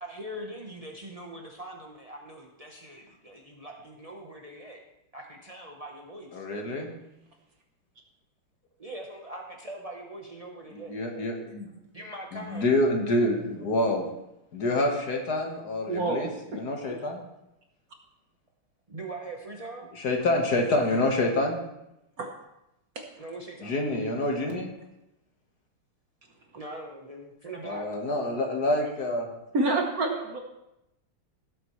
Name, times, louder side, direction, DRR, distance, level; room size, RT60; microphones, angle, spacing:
voice 1, 0.0-4.8 5.1-6.4 8.8-10.9 11.9-12.7 18.9-19.9 23.2-23.7 26.5-27.9, right 1 dB, 70° right, 0 dB, 0.3 m, -41 dB
voice 2, 6.3-6.9 10.7-11.7 12.3-14.1 14.5-17.2 20.0-21.6 23.6-24.7 27.6-29.3, left 1 dB, 50° left, 2 dB, 1.8 m, -27 dB
voice 3, 15.9-16.6 22.2-22.3 22.9-23.0 29.5-30.4, right 2 dB, 50° right, 3 dB, 1.3 m, -28 dB
17.0 x 7.9 x 3.1 m, 0.88 s
omnidirectional pair, 2.4 m